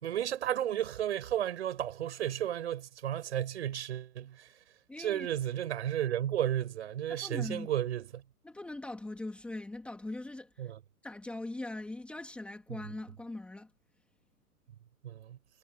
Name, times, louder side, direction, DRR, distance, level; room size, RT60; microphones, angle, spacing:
voice 1, 0.0-4.5 5.0-8.2 10.6-10.8 15.0-15.4, right 11 dB, 45° right, 5.6 m, -33 dB
voice 2, 4.9-5.3 7.1-7.7 8.4-10.7 11.0-13.7, left 2 dB, ahead, 3.5 m, -41 dB
hypercardioid pair, 160°, 46 cm